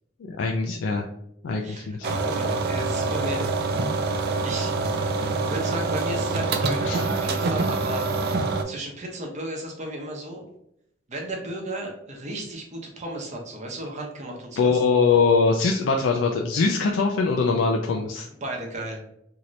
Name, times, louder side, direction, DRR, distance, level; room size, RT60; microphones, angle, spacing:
voice 1, 0.3-1.0 1.4-2.1 6.9-7.0 14.6-18.3, left 4 dB, 85° left, 1 dB, 0.4 m, -22 dB
voice 2, 1.6-3.5 4.4-4.8 5.4-8.1 8.6-10.4 11.1-14.8 18.4-19.0, right 1 dB, 40° right, 0 dB, 0.7 m, -34 dB
sound 1, 2.0-8.6, right 3 dB, 60° right, 0.4 m, -25 dB
2.8 x 2.6 x 3.1 m, 0.74 s
head